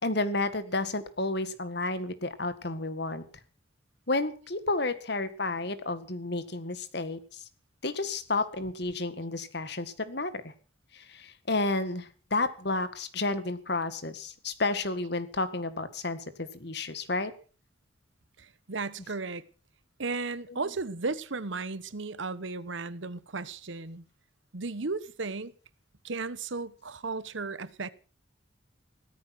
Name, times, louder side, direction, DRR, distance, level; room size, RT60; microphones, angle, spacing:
voice 1, 0.0-3.2 4.1-7.4 7.8-10.5 10.9-17.3 20.5-20.7, left 2 dB, 55° left, 1.8 m, -31 dB
voice 2, 18.4-19.4 20.0-24.0 24.5-25.5 26.0-27.9, right 3 dB, 70° right, 1.0 m, -35 dB
17.0 x 14.0 x 6.0 m
head